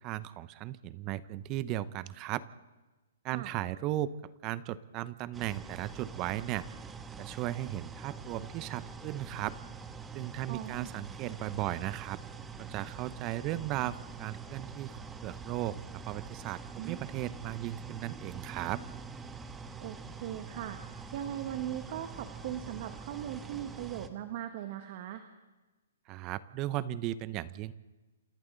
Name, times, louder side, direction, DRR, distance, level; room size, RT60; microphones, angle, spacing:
voice 1, 0.0-2.4 3.2-6.6 7.2-9.6 10.1-12.2 12.6-18.8 26.1-27.7, right 14 dB, 30° right, 16 dB, 0.8 m, -36 dB
sound 1, 5.3-24.1, right 5 dB, 10° right, 1.3 m, -45 dB
voice 2, 10.5-10.9 16.8-17.1 19.8-25.2, right 11 dB, 45° right, 7 dB, 1.6 m, -39 dB
28.0 x 27.5 x 4.1 m, 1.2 s
hypercardioid pair, 145°, 0 cm